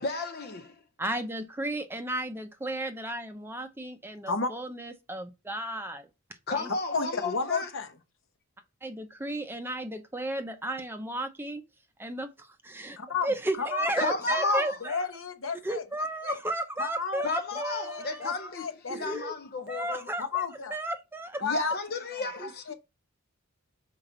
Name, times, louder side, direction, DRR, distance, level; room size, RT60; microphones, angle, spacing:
voice 1, 0.0-0.8 6.5-7.7 14.0-14.8 17.2-20.1 21.4-22.7, left 3 dB, 45° left, 0.6 m, -33 dB
voice 2, 1.0-6.1 6.6-6.7 8.8-11.6 12.0-13.0 13.2-15.1 15.6-18.5 18.9-19.3 19.7-21.4 22.4-22.5, right 1 dB, 10° right, 0.6 m, -34 dB
voice 3, 6.9-7.9 13.0-13.9 14.3-15.8 16.2-16.4 16.8-17.3 17.5-19.0 20.2-20.8 21.4-21.8 22.1-22.3 22.7-22.8, left 4 dB, 60° left, 0.9 m, -32 dB
5.7 x 4.5 x 3.9 m
head